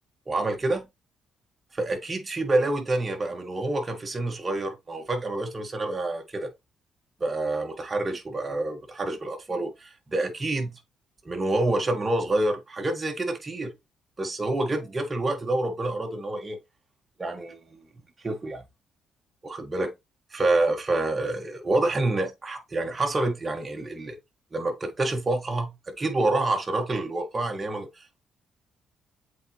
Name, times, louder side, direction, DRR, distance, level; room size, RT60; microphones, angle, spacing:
voice 1, 0.3-0.9 1.7-6.5 7.2-10.8 11.3-13.7 14.2-16.6 17.2-17.8 18.2-18.6 19.4-19.9 20.3-24.2 24.5-28.2, right 2 dB, 30° right, 1.8 m, -27 dB
7.8 x 4.3 x 3.2 m
cardioid pair, 90°, 0 cm